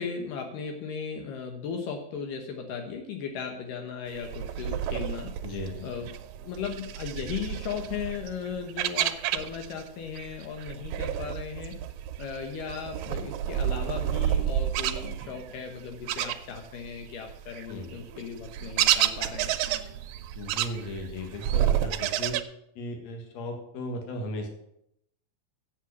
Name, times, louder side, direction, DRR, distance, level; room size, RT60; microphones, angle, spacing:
voice 1, 0.0-5.4 5.8-6.1 6.4-11.8 12.2-19.5, left 6 dB, 80° left, 4 dB, 2.7 m, -36 dB
sound 1, 4.2-9.9 10.2-16.9 17.3-22.4, right 11 dB, 75° right, 1.7 m, -30 dB
voice 2, 5.4-5.9 17.7-17.9 20.3-22.4 22.8-24.5, left 1 dB, 55° left, 3 dB, 2.8 m, -36 dB
7.8 x 7.5 x 8.3 m, 0.78 s
omnidirectional pair, 3.8 m